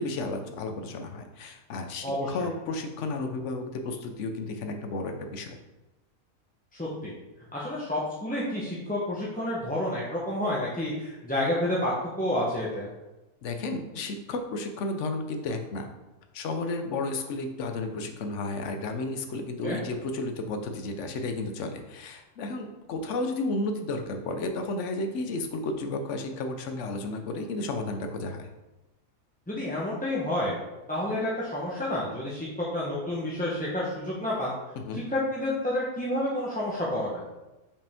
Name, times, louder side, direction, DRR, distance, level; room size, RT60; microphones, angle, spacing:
voice 1, 0.0-5.6 13.4-15.9 16.3-28.5 34.8-35.0, left 2 dB, 60° left, 5 dB, 1.0 m, -32 dB
voice 2, 6.7-7.1 7.5-11.9 12.2-12.9 19.6-19.8 29.5-30.6 30.9-34.5 34.9-37.2, left 1 dB, 10° left, -7 dB, 0.7 m, -29 dB
5.3 x 5.2 x 3.5 m, 1.0 s
omnidirectional pair, 1.5 m